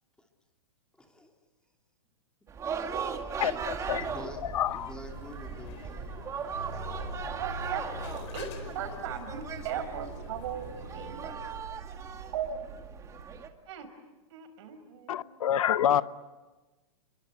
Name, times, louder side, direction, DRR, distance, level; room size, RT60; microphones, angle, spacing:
voice 1, 1.0-1.3 3.8-4.4 4.7-6.1, left 1 dB, 5° left, 2.8 m, -48 dB
sound 1, 2.5-13.5, right 6 dB, 15° right, 2.0 m, -39 dB
voice 2, 3.4-4.0 4.5-4.9 15.1-16.0, left 10 dB, 75° left, 1.0 m, -27 dB
sound 2, 3.9-11.3, left 5 dB, 55° left, 4.5 m, -47 dB
sound 3, 6.5-13.4, right 1 dB, 90° right, 5.0 m, -44 dB
voice 3, 7.4-11.4 12.3-12.6 13.7-13.9 14.3-15.2, right 8 dB, 55° right, 5.7 m, -38 dB
29.0 x 23.5 x 8.3 m
hypercardioid pair, 145°, 18 cm